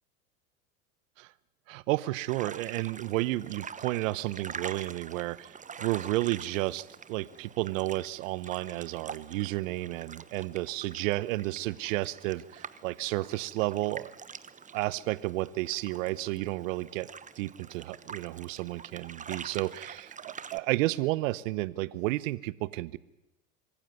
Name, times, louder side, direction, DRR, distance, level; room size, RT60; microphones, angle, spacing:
voice 1, 1.7-14.1 14.7-17.1 17.4-23.0, right 18 dB, 70° right, 20 dB, 1.0 m, -32 dB
sound 1, 2.3-20.6, right 6 dB, 20° right, 1.0 m, -45 dB
24.0 x 15.0 x 9.1 m, 0.95 s
hypercardioid pair, 90°, 40 cm